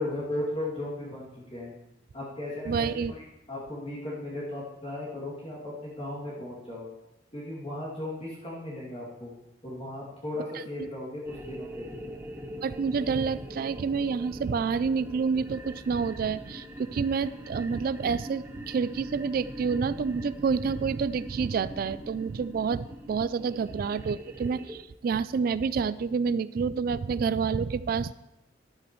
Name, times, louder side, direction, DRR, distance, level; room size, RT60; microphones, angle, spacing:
voice 1, 0.0-1.7 2.1-3.2 3.5-6.9 7.3-9.3 9.6-12.1, left 1 dB, 30° left, -7 dB, 2.5 m, -36 dB
voice 2, 2.7-3.1 10.8-10.9 12.6-28.1, right 5 dB, 50° right, 16 dB, 0.3 m, -28 dB
sound 1, 11.2-24.8, equal, 15° right, 0.7 m, -42 dB
13.0 x 11.5 x 3.1 m, 0.90 s
head